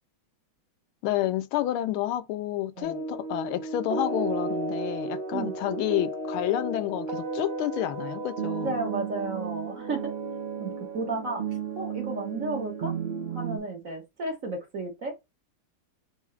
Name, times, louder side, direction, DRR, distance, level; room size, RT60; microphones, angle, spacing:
voice 1, 1.0-8.7, left 13 dB, 85° left, 1.4 m, -29 dB
sound 1, 2.8-13.6, right 4 dB, 60° right, 0.5 m, -33 dB
voice 2, 8.6-10.1 10.6-11.5 11.7-12.9 13.3-15.1, right 3 dB, 45° right, 1.3 m, -33 dB
4.7 x 2.7 x 3.2 m
omnidirectional pair, 2.3 m